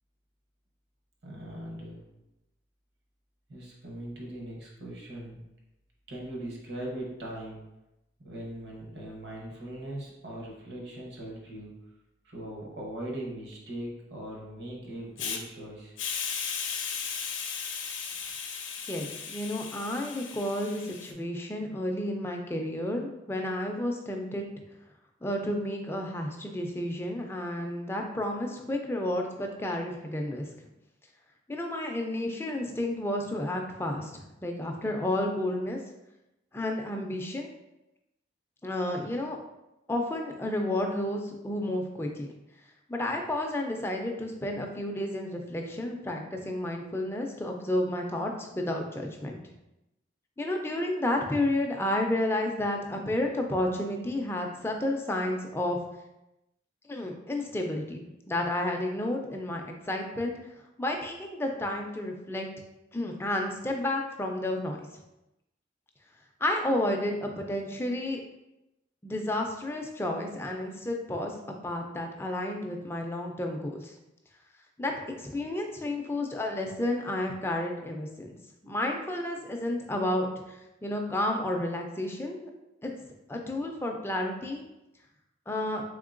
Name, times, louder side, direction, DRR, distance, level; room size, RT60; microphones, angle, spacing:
voice 1, 1.2-2.0 3.5-5.4 6.1-7.6 8.2-11.7 12.2-15.9, right 1 dB, 65° right, -2 dB, 1.0 m, -40 dB
Hiss, 15.2-15.4 16.0-21.1, left 6 dB, 85° left, 0.5 m, -36 dB
voice 2, 18.9-24.4 25.2-30.4 31.5-35.8 36.5-37.5 38.6-39.4 39.9-42.3 42.9-49.5 50.4-55.8 56.9-58.0 58.3-60.4 60.8-62.5 62.9-64.8 66.4-68.2 69.0-71.3 71.6-73.9 74.8-82.5 82.8-82.9 83.3-84.6 85.5-85.8, left 1 dB, 10° left, 2 dB, 0.3 m, -31 dB
3.6 x 3.6 x 2.5 m, 0.92 s
head